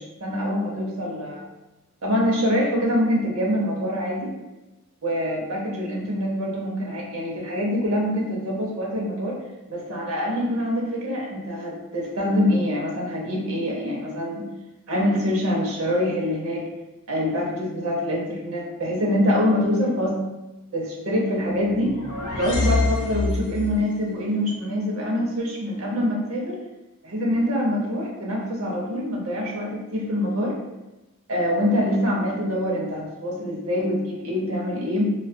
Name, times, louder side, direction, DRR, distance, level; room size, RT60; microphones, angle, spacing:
voice 1, 0.0-1.5 2.0-4.3 5.0-9.4 9.7-14.5 14.9-16.6 17.1-20.2 20.7-22.0 22.3-26.6 27.0-30.6 31.3-35.1, equal, 70° right, -3 dB, 0.7 m, -25 dB
sound 1, 21.6-23.9, left 3 dB, 75° left, 0.5 m, -26 dB
2.5 x 2.3 x 2.3 m, 1.0 s
head